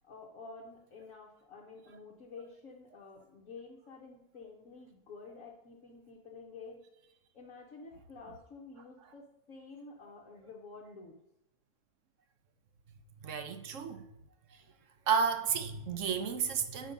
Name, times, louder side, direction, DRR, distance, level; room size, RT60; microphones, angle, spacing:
voice 1, 0.0-6.8 7.3-11.2, left 4 dB, 60° left, 1.4 m, -50 dB
voice 2, 13.2-14.1 15.1-16.9, right 6 dB, 60° right, 0.9 m, -32 dB
6.3 x 5.6 x 5.2 m
omnidirectional pair, 1.7 m